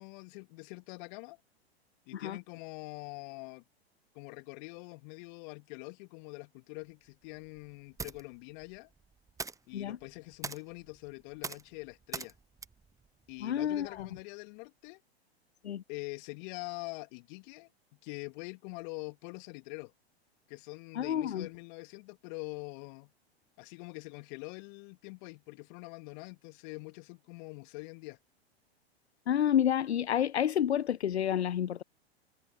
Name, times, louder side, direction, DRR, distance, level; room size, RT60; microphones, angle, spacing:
voice 1, 0.0-1.4 2.1-3.6 4.1-8.9 9.7-12.3 13.3-15.0 15.9-17.7 18.0-19.9 20.5-23.1 23.6-28.2, left 30 dB, 45° left, 2.7 m, -44 dB
sound 1, 6.8-14.1, right 4 dB, 10° right, 1.1 m, -46 dB
voice 2, 13.4-14.1 15.6-15.8 20.9-21.5 29.3-31.8, left 10 dB, 80° left, 0.6 m, -29 dB
figure-of-eight pair, 95°, 32 cm